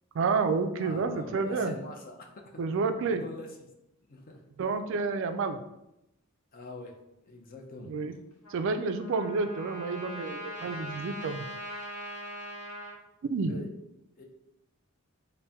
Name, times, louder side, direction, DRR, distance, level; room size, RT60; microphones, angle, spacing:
voice 1, 0.1-1.7 2.6-3.2 4.6-5.6 7.9-8.1 8.5-11.5 13.2-13.5, right 4 dB, 60° right, 8 dB, 0.3 m, -29 dB
voice 2, 0.8-3.5 4.1-4.7 6.5-6.9 7.2-7.9 13.5-13.7 14.2-14.3, left 2 dB, 40° left, 2 dB, 0.5 m, -45 dB
Trumpet, 8.4-13.0, equal, 90° left, 1.1 m, -41 dB
4.1 x 2.2 x 3.5 m, 0.87 s
head